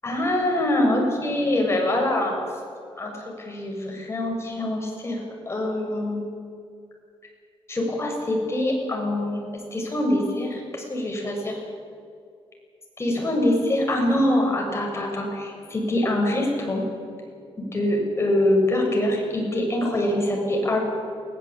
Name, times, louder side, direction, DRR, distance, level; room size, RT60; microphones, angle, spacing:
voice 1, 0.0-2.3 3.0-6.3 7.7-9.4 9.7-11.6 13.0-16.8 17.6-20.8, left 1 dB, 25° left, 0 dB, 6.9 m, -24 dB
21.5 x 16.5 x 8.8 m, 2.3 s
cardioid pair, 100°, 10 cm